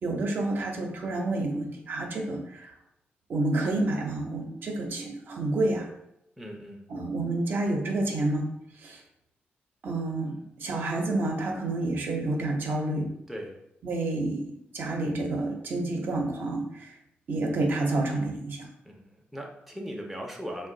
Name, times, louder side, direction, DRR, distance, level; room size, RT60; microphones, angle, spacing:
voice 1, 0.0-2.7 3.3-5.9 6.9-8.4 8.8-9.0 9.8-13.1 13.8-14.4 14.7-16.9 17.3-18.7, right 2 dB, 60° right, 1 dB, 0.6 m, -29 dB
voice 2, 6.4-6.8 13.3-13.6 18.8-20.7, equal, 5° right, 0 dB, 0.4 m, -39 dB
2.5 x 2.2 x 3.8 m, 0.80 s
wide cardioid pair, 125°, 4 cm